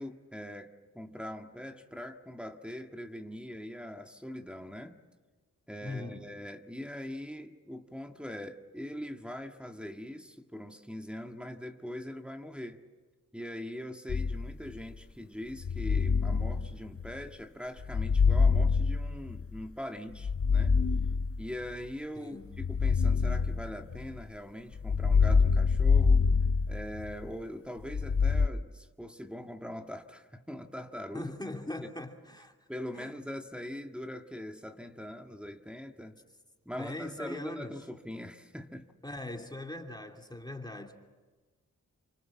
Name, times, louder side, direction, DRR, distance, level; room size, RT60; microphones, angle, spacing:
voice 1, 0.0-5.0 5.7-12.8 13.3-20.8 21.4-26.2 26.7-31.3 32.7-36.2 36.6-38.9, equal, 5° right, 4 dB, 1.8 m, -42 dB
voice 2, 5.8-6.3 22.2-22.5 31.1-32.5 32.9-33.1 36.8-37.7 39.0-41.0, left 2 dB, 10° left, 3 dB, 2.8 m, -40 dB
sound 1, 14.1-14.8 15.6-17.2 17.8-19.6 20.1-21.7 22.5-24.2 24.8-27.3 27.9-28.5, left 5 dB, 45° left, 0.8 m, -26 dB
29.0 x 25.5 x 7.4 m, 1.3 s
cardioid pair, 55°, 33 cm